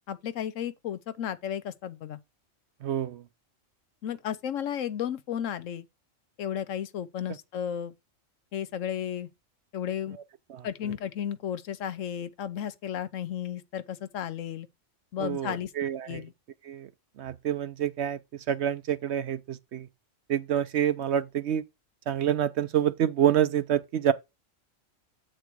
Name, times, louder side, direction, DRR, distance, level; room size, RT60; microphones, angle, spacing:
voice 1, 0.1-2.2 4.0-5.9 6.4-7.9 8.5-9.3 9.7-10.2 10.6-14.7 15.1-15.7 16.1-16.3, left 9 dB, 75° left, 1.1 m, -33 dB
voice 2, 2.8-3.2 10.5-10.7 15.2-16.2 16.7-16.9 17.2-18.2 18.5-19.9 20.3-21.6 22.1-24.1, right 10 dB, 65° right, 0.8 m, -27 dB
8.2 x 4.1 x 4.6 m
omnidirectional pair, 1.4 m